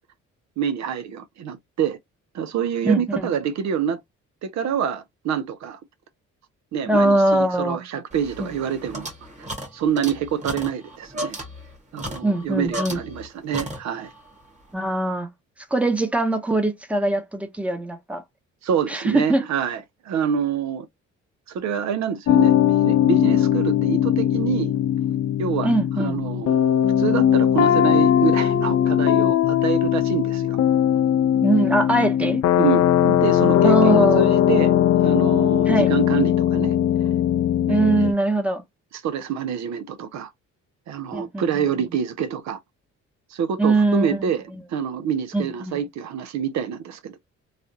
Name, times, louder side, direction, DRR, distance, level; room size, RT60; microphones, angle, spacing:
voice 1, 0.6-2.0 2.3-4.0 4.4-5.8 6.7-9.1 9.4-9.5 9.7-11.4 11.9-14.1 18.6-20.9 21.5-22.5 22.8-24.7 25.4-25.7 26.0-26.7 27.0-30.6 32.6-34.7 35.0-36.8 37.7-37.9 38.9-40.3 40.9-42.6 43.3-44.4 44.7-47.2, right 7 dB, 65° right, 0.6 m, -26 dB
voice 2, 2.8-3.3 6.9-7.8 8.4-8.5 12.2-13.0 14.7-15.3 15.7-18.2 18.9-19.4 25.6-26.2 31.4-32.4 33.6-34.3 35.7-35.9 37.7-38.6 41.1-41.7 43.6-44.2 45.3-45.8, right 2 dB, 5° right, 0.8 m, -21 dB
sound 1, 8.1-13.3 13.5-14.2, equal, 25° right, 1.3 m, -35 dB
sound 2, 22.3-38.1, left 10 dB, 55° left, 0.5 m, -19 dB
3.3 x 2.3 x 2.7 m
cardioid pair, 90°, 30 cm